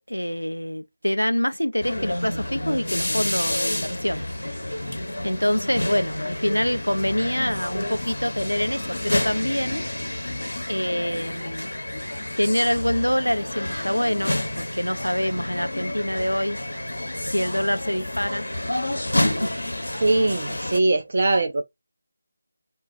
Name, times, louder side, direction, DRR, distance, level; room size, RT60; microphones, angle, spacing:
voice 1, 0.1-4.3 5.2-9.8 10.7-11.7 12.4-16.6 17.2-18.5 19.2-20.0, equal, 90° left, 0.4 m, -26 dB
sound 1, 1.8-20.8, left 1 dB, 70° left, 0.8 m, -29 dB
voice 2, 20.0-21.6, right 2 dB, 45° right, 0.3 m, -21 dB
4.0 x 2.3 x 2.3 m
figure-of-eight pair, 160°, 0 cm